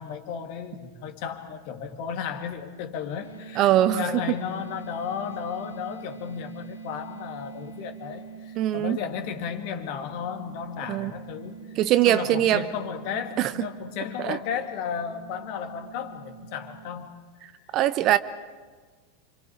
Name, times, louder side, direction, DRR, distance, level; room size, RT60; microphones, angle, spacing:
voice 1, 0.0-11.7 12.0-17.1 17.6-17.7, left 7 dB, 45° left, 6 dB, 2.2 m, -34 dB
sound 1, 3.2-17.0, right 7 dB, 90° left, 3.7 m, -44 dB
voice 2, 3.6-4.0 8.6-9.0 10.9-11.1 11.8-12.6 13.4-13.5 14.2-14.4 17.7-18.2, right 13 dB, 35° right, 14 dB, 0.8 m, -21 dB
30.0 x 26.0 x 5.1 m, 1.4 s
figure-of-eight pair, 90°, 0 cm